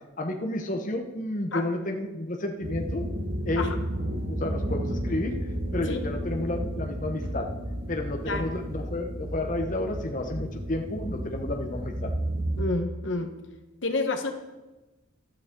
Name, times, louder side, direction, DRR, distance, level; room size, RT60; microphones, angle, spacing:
voice 1, 0.2-3.0 3.5-3.7 4.1-5.3 5.7-7.4 7.9-12.1, left 1 dB, 40° left, 3 dB, 1.1 m, -31 dB
sound 1, 2.6-12.7, right 1 dB, 45° right, 2.0 m, -32 dB
voice 2, 12.6-13.3 13.8-14.3, left 3 dB, 65° left, 6 dB, 1.2 m, -29 dB
15.0 x 12.0 x 3.8 m, 1.1 s
head